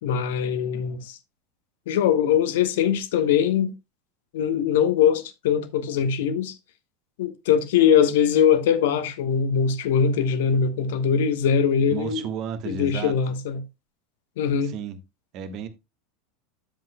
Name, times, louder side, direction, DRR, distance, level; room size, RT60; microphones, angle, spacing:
voice 1, 0.0-1.2 1.9-3.7 4.3-6.5 7.2-12.2 12.7-13.6 14.4-14.7, left 8 dB, 60° left, 1.1 m, -22 dB
voice 2, 11.9-13.1 14.6-15.0 15.3-15.7, right 7 dB, 45° right, 1.4 m, -32 dB
10.5 x 7.6 x 2.2 m
figure-of-eight pair, 80°, 0 cm